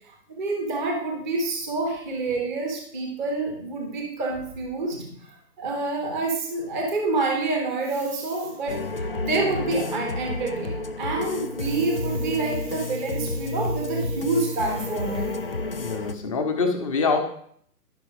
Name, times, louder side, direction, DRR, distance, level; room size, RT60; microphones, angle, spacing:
voice 1, 0.4-5.1 5.6-15.3, right 3 dB, ahead, 0 dB, 0.6 m, -27 dB
sound 1, 8.7-16.2, left 2 dB, 40° left, 0.4 m, -30 dB
voice 2, 15.8-17.2, left 4 dB, 20° left, 6 dB, 0.9 m, -24 dB
11.5 x 5.8 x 4.9 m, 0.64 s
hypercardioid pair, 150°, 48 cm